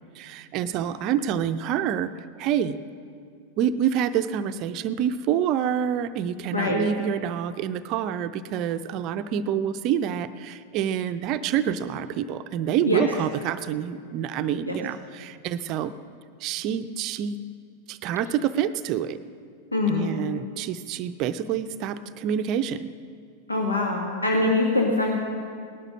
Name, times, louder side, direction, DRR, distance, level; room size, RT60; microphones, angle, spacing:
voice 1, 0.2-2.8 3.6-15.9 16.4-17.4 17.9-19.2 19.9-22.9, right 9 dB, 40° right, 11 dB, 0.5 m, -27 dB
voice 2, 6.5-6.8 12.9-13.0 14.7-14.8 19.7-20.1 23.5-25.1, left 2 dB, 80° left, 0 dB, 1.6 m, -23 dB
19.0 x 11.5 x 6.2 m, 2.2 s
figure-of-eight pair, 90°, 0 cm